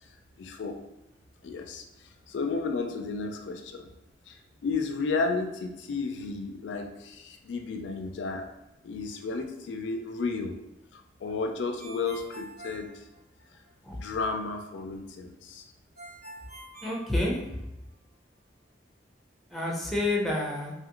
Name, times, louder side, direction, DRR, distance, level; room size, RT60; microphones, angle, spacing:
voice 1, 0.4-0.8 1.4-1.8 2.3-3.9 4.3-8.5 8.8-10.5 10.9-13.0 13.9-15.6, left 4 dB, 85° left, 5 dB, 0.4 m, -33 dB
Ringtone, 11.8-13.7 16.0-17.8, right 1 dB, 60° right, 1.2 m, -46 dB
voice 2, 16.8-17.6 19.5-20.7, left 1 dB, ahead, -3 dB, 0.5 m, -29 dB
2.7 x 2.4 x 2.9 m, 0.92 s
head